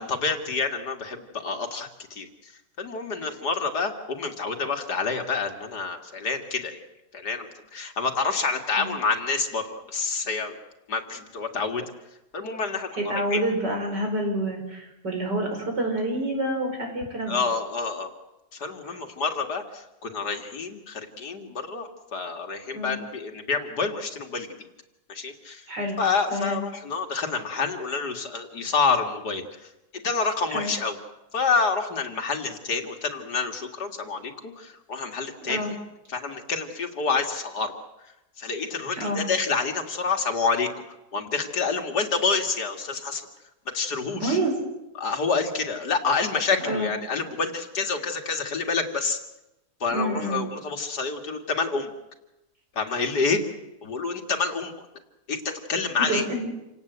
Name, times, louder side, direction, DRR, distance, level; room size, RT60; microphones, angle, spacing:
voice 1, 0.0-2.5 2.8-6.9 7.1-10.5 10.9-11.9 12.3-13.4 17.3-18.1 18.5-24.5 25.1-25.7 26.0-30.9 31.3-35.8 36.1-37.7 38.4-40.7 41.1-43.2 43.7-44.4 45.0-49.2 49.8-51.9 52.7-53.4 53.8-54.7 55.3-56.3, left 4 dB, 70° left, 4 dB, 2.7 m, -28 dB
voice 2, 12.9-17.4 18.9-19.0 22.7-23.0 25.7-26.0 26.3-26.6 30.5-30.7 35.4-35.7 39.0-39.2 44.1-44.5 46.6-46.9 49.9-50.5 52.9-53.0 56.0-56.5, right 1 dB, 80° right, 3 dB, 5.8 m, -28 dB
28.0 x 18.0 x 8.1 m, 0.97 s
omnidirectional pair, 1.8 m